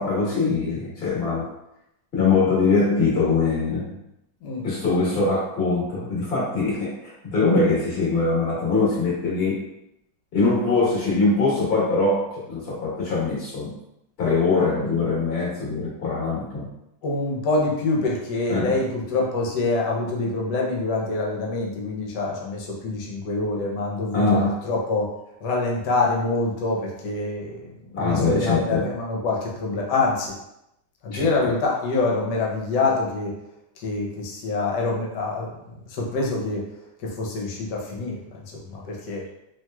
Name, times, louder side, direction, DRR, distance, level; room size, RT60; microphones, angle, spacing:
voice 1, 0.0-1.5 2.1-3.9 4.6-9.7 10.3-13.7 14.2-16.7 18.5-18.8 24.1-24.5 27.9-28.9 31.1-31.5, left 3 dB, 40° left, -6 dB, 1.2 m, -22 dB
voice 2, 17.0-24.4 24.6-25.1 25.4-30.3 31.0-33.4 33.8-35.6 35.9-36.6 37.0-39.3, left 3 dB, 75° left, -2 dB, 1.3 m, -26 dB
3.1 x 2.9 x 2.2 m, 0.85 s
omnidirectional pair, 1.9 m